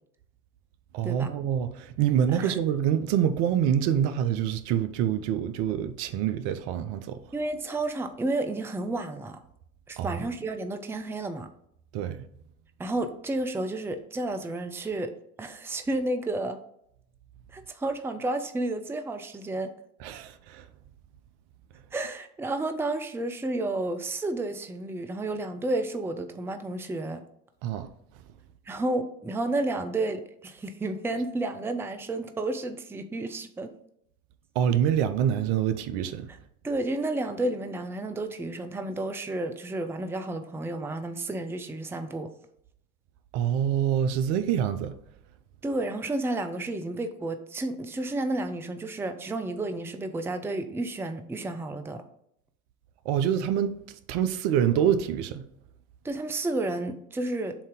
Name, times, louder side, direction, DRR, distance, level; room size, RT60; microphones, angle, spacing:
voice 1, 0.9-7.2 10.0-10.2 11.9-12.2 20.0-20.6 27.6-27.9 34.5-36.3 43.3-44.9 53.1-53.8 54.1-55.4, right 9 dB, 60° right, 0.7 m, -26 dB
voice 2, 7.3-9.4 9.9-11.5 12.8-15.1 15.4-16.6 17.5-19.7 21.9-27.2 28.7-33.7 36.3-36.4 36.6-42.3 45.6-52.0 56.0-57.6, right 2 dB, 5° right, 0.5 m, -31 dB
7.3 x 2.8 x 5.1 m
hypercardioid pair, 70°, 43 cm